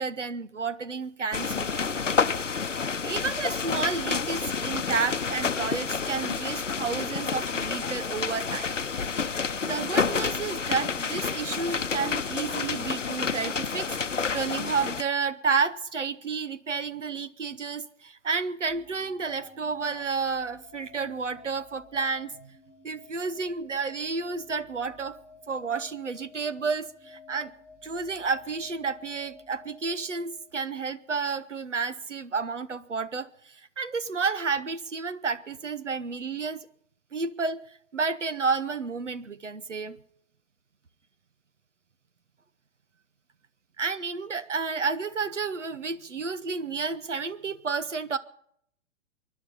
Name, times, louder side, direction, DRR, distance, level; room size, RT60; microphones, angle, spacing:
voice 1, 0.0-2.5 3.0-8.7 9.6-22.5 22.8-25.2 25.5-27.5 27.8-36.7 37.1-37.6 37.9-40.0 43.8-48.2, right 4 dB, 80° right, 15 dB, 1.0 m, -31 dB
sound 1, 1.3-15.0, left 5 dB, 85° left, 0.8 m, -29 dB
sound 2, 18.7-30.8, left 3 dB, 20° right, 3.7 m, -53 dB
24.5 x 11.0 x 5.5 m, 0.71 s
figure-of-eight pair, 110°, 36 cm